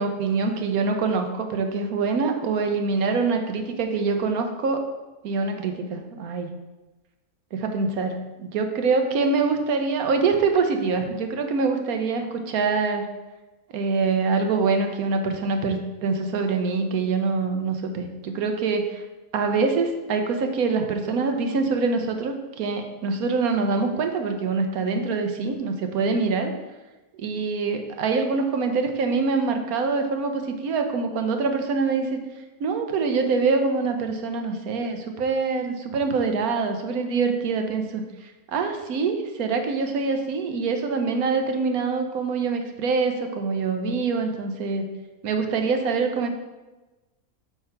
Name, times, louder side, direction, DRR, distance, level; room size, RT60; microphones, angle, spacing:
voice 1, 0.0-4.8 5.2-6.5 7.5-13.1 13.7-19.0 19.3-26.5 27.2-32.2 32.6-44.9 45.2-46.3, right 4 dB, 80° right, 5 dB, 1.3 m, -25 dB
8.1 x 3.5 x 5.7 m, 1.1 s
omnidirectional pair, 1.5 m